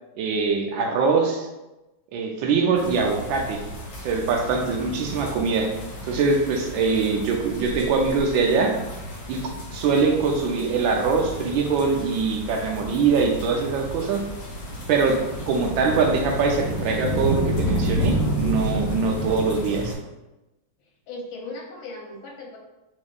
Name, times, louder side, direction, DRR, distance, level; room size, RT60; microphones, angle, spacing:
voice 1, 0.2-1.5 2.1-3.6 4.0-5.7 6.1-8.8 9.3-9.4 9.7-14.2 14.9-15.2 15.5-19.9, right 4 dB, 80° right, 2 dB, 1.4 m, -23 dB
sound 1, 2.8-19.9, equal, 65° left, 1.7 m, -33 dB
sound 2, 3.7-19.4, right 1 dB, 15° left, 0.5 m, -34 dB
voice 2, 21.1-22.6, left 2 dB, 85° left, 1 dB, 1.6 m, -37 dB
6.1 x 3.0 x 2.4 m, 1.0 s
omnidirectional pair, 2.1 m